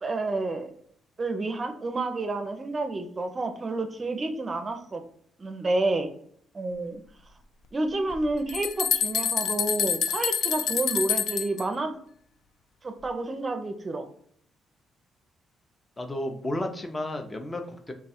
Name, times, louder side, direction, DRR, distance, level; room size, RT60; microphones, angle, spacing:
voice 1, 0.0-0.7 1.2-5.0 5.4-6.1 6.5-7.0 7.7-11.9 12.8-14.0, right 2 dB, 30° right, 7 dB, 0.5 m, -29 dB
sound 1, 8.1-11.6, left 7 dB, 75° left, 0.3 m, -27 dB
voice 2, 16.0-17.9, left 1 dB, 20° left, 5 dB, 0.5 m, -32 dB
3.4 x 2.3 x 4.1 m, 0.64 s
cardioid pair, 90°, 0 cm